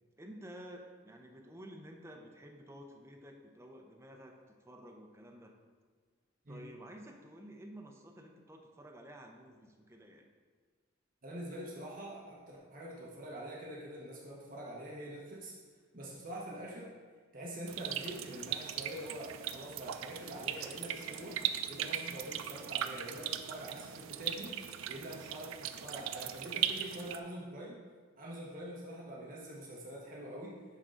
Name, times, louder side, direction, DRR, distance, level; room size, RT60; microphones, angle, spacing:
voice 1, 0.2-5.6 6.5-10.3, equal, 15° right, 2 dB, 0.6 m, -51 dB
voice 2, 11.2-15.5 15.9-16.9 17.3-21.4 21.7-27.8 28.2-30.6, right 1 dB, 40° right, -4 dB, 1.1 m, -45 dB
sound 1, 17.7-27.2, right 10 dB, 85° right, 0.4 m, -39 dB
10.5 x 3.8 x 3.8 m, 1.6 s
head